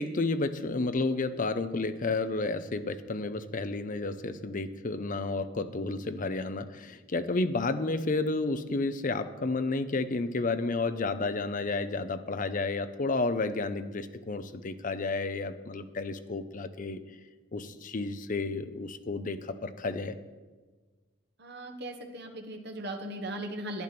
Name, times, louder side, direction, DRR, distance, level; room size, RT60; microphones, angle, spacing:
voice 1, 0.0-17.0 17.5-20.1, left 3 dB, 45° left, 10 dB, 0.7 m, -31 dB
voice 2, 21.4-23.8, right 1 dB, 60° right, 3 dB, 1.4 m, -38 dB
11.0 x 10.5 x 6.0 m, 1.3 s
head